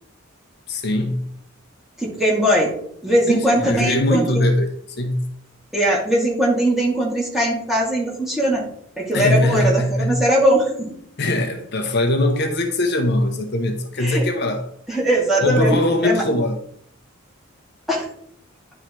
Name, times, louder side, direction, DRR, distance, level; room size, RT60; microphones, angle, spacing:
voice 1, 0.7-1.3 3.3-4.7 5.0-5.3 9.1-10.2 11.2-14.7 15.4-16.6, left 1 dB, 55° left, 0.9 m, -21 dB
voice 2, 2.0-2.7 3.0-4.5 5.7-8.6 9.0-10.9 14.0-14.3 14.9-15.8 16.0-16.2 17.9-18.1, right 1 dB, ahead, 1.9 m, -20 dB
10.0 x 3.7 x 4.6 m
head